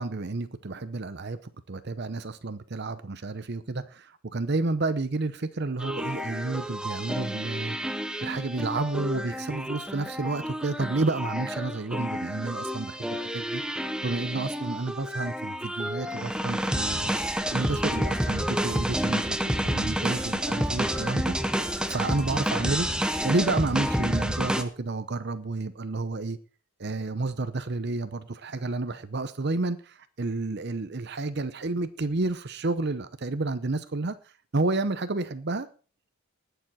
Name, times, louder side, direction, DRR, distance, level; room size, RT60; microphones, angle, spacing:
voice 1, 0.0-1.4 1.7-7.8 8.2-17.2 17.5-21.3 21.9-22.9 23.2-26.4 26.8-34.1 34.5-35.7, right 3 dB, 50° right, 0.8 m, -30 dB
sound 1, 5.8-24.6, equal, 5° right, 0.7 m, -29 dB
20.0 x 7.1 x 4.2 m
head